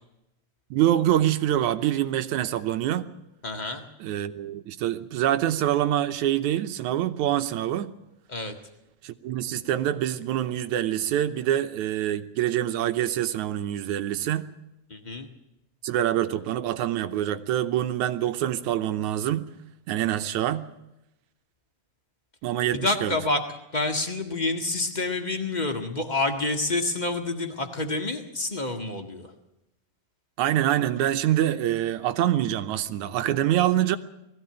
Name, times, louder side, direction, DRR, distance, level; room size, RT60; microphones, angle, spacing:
voice 1, 0.7-3.1 4.0-7.9 9.0-14.5 15.8-19.5 19.9-20.7 22.4-23.2 30.4-34.0, right 12 dB, 70° right, 2.0 m, -25 dB
voice 2, 3.4-3.8 8.3-8.5 14.9-15.3 22.8-23.4 23.7-29.3, left 2 dB, 90° left, 0.4 m, -28 dB
20.5 x 15.5 x 8.8 m
omnidirectional pair, 4.0 m